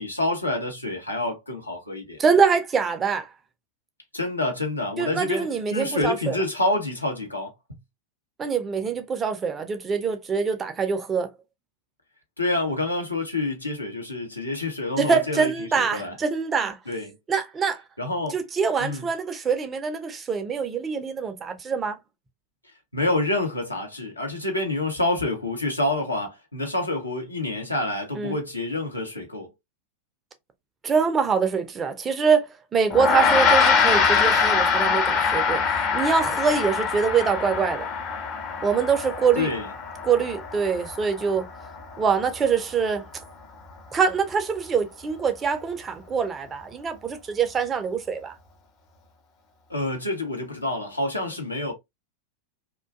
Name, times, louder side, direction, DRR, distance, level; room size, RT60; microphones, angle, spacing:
voice 1, 0.0-2.2 4.1-7.5 12.4-16.1 16.6-17.1 18.0-18.4 18.8-19.1 22.9-29.5 39.4-39.7 49.7-51.7, left 2 dB, 85° left, 0.8 m, -27 dB
voice 2, 2.2-3.3 5.0-6.4 8.4-11.3 15.0-16.8 17.3-17.8 18.3-22.0 28.1-28.4 30.8-32.5 32.7-35.6 35.9-37.9 38.6-39.5 40.0-41.5 42.0-43.0 43.9-48.3, right 6 dB, 20° right, 0.4 m, -24 dB
Gong, 32.9-42.5, left 5 dB, 35° left, 0.6 m, -24 dB
2.5 x 2.3 x 2.3 m
figure-of-eight pair, 90°, 0 cm